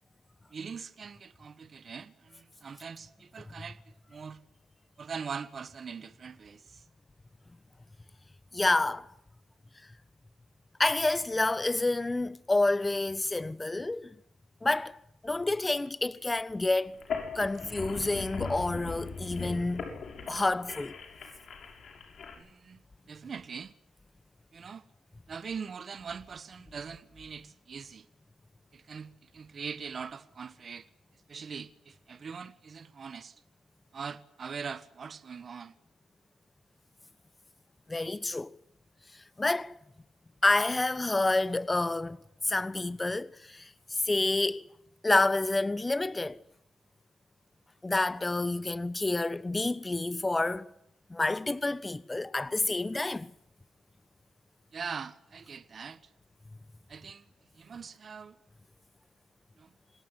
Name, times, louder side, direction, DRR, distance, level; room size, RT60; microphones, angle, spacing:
voice 1, 0.5-4.4 5.0-6.9 17.4-17.5 22.4-22.8 23.1-23.7 24.5-24.9 25.3-28.1 28.7-30.9 31.1-33.4 33.9-35.8 54.7-56.1 56.9-57.3 57.5-58.4 59.6-59.7, right 6 dB, 55° right, 1.3 m, -42 dB
voice 2, 8.5-9.1 10.8-14.1 14.6-15.0 15.2-17.0 17.3-19.9 20.3-21.0 37.9-38.5 39.1-39.7 40.4-42.2 42.4-43.7 44.0-44.6 45.0-46.4 47.8-50.7 51.1-53.3, left 2 dB, 25° left, 1.1 m, -28 dB
sound 1, 16.9-22.3, left 5 dB, 65° left, 7.0 m, -39 dB
27.5 x 18.5 x 8.1 m
supercardioid pair, 60°, 0 cm